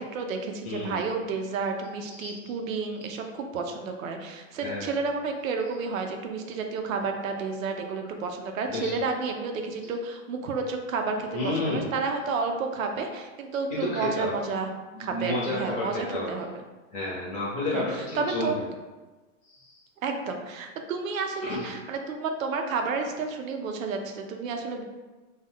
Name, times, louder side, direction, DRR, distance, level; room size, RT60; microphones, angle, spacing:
voice 1, 0.0-14.7 15.0-16.5 17.7-18.6 20.0-24.8, right 4 dB, 80° right, 4 dB, 0.6 m, -31 dB
voice 2, 0.6-1.0 2.1-2.4 4.6-4.9 8.7-9.0 11.3-11.9 13.7-14.3 14.9-16.3 16.9-18.7 19.5-19.8 21.4-21.7, left 2 dB, 20° left, -6 dB, 0.7 m, -31 dB
2.3 x 2.3 x 3.4 m, 1.2 s
hypercardioid pair, 145°, 40 cm